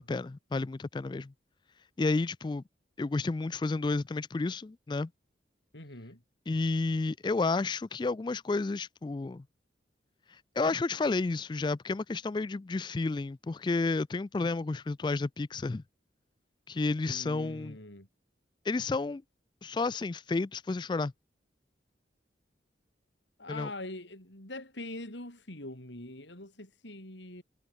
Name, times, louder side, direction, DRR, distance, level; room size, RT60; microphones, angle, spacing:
voice 1, 0.0-1.3 2.0-2.6 3.0-5.1 6.5-9.4 10.6-15.8 16.7-17.8 18.7-19.2 19.6-21.1 23.5-23.7, left 3 dB, 25° left, 0.3 m, -31 dB
voice 2, 5.7-6.2 17.0-18.1 23.4-27.4, left 1 dB, 80° left, 6.4 m, -43 dB
head